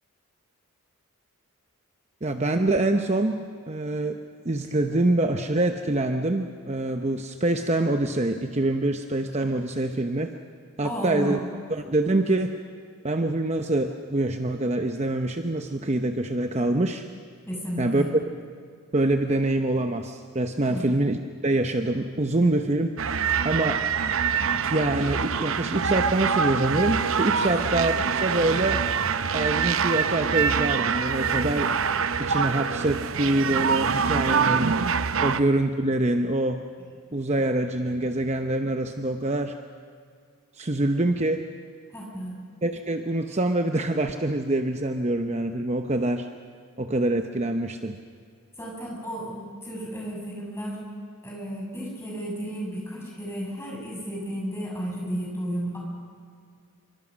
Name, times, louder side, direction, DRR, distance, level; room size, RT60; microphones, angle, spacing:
voice 1, 2.2-10.3 10.8-11.4 11.7-12.5 13.0-17.0 17.8-18.0 18.9-21.2 21.4-22.9 23.4-23.8 24.5-28.8 29.3-31.7 32.2-34.7 35.2-36.6 37.1-39.6 40.6-41.4 42.6-46.3 46.8-48.0, right 2 dB, 30° right, 6 dB, 0.8 m, -25 dB
voice 2, 10.8-11.4 17.5-18.1 20.7-20.9 27.4-27.6 41.9-42.4 48.6-50.8 51.2-55.8, equal, 10° left, -3 dB, 6.8 m, -33 dB
sound 1, 23.0-35.4, right 6 dB, 65° right, 0.7 m, -25 dB
26.5 x 25.0 x 6.4 m, 2.2 s
head